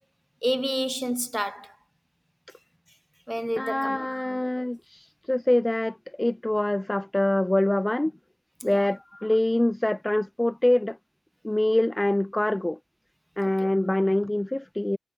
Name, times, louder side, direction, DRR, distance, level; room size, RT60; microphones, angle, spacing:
voice 1, 0.4-1.7 3.3-4.1 4.4-4.7 8.6-8.8 13.4-13.7, equal, 5° right, 2.5 m, -30 dB
voice 2, 3.6-8.1 8.6-11.0 11.4-12.8 13.4-15.0, left 1 dB, 15° left, 0.4 m, -25 dB
supercardioid pair, 50°, 0 cm